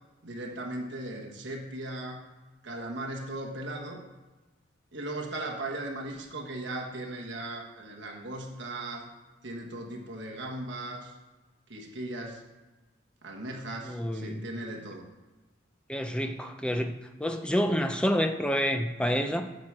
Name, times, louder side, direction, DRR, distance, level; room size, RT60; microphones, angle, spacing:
voice 1, 0.2-2.3 2.6-4.0 4.9-9.1 9.4-11.1 11.7-12.4 13.2-15.1, right 1 dB, 65° right, 0 dB, 1.4 m, -37 dB
voice 2, 13.8-14.4 15.9-16.9 17.2-19.4, equal, 5° left, 6 dB, 0.6 m, -28 dB
10.5 x 4.7 x 7.4 m, 1.1 s
head